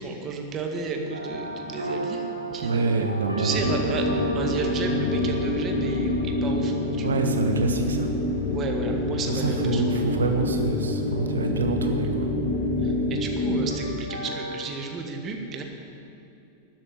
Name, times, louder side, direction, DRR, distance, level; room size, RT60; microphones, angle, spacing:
voice 1, 0.0-2.2 2.5-3.0 3.4-7.1 8.5-10.0 12.8-15.6, right 4 dB, 30° right, 3 dB, 1.8 m, -33 dB
sound 1, 1.1-8.3 13.7-14.6, right 1 dB, 85° right, 1.7 m, -34 dB
voice 2, 2.6-3.5 7.0-8.1 9.3-12.3, right 3 dB, 70° right, 5 dB, 1.3 m, -26 dB
sound 2, 3.5-13.9, left 2 dB, 60° left, 2.7 m, -27 dB
12.5 x 7.7 x 9.6 m, 2.8 s
figure-of-eight pair, 90°, 0 cm